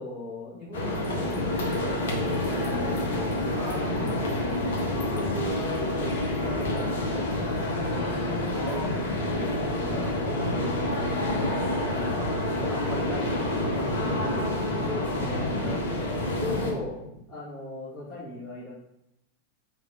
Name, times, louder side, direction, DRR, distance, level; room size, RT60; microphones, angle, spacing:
voice 1, 0.0-3.4 4.7-6.9 7.1-7.6 7.9-8.4 14.9-15.5 16.2-17.0 17.3-18.7, left 2 dB, 20° left, -10 dB, 1.6 m, -38 dB
sound 1, 0.7-16.7, left 1 dB, 60° left, 1.1 m, -28 dB
voice 2, 3.5-4.2 8.5-10.8 11.1-11.8 12.4-14.8 15.5-15.8 17.0-17.1, equal, 5° right, -8 dB, 1.1 m, -38 dB
3.4 x 3.1 x 4.5 m, 0.84 s
figure-of-eight pair, 90°, 0 cm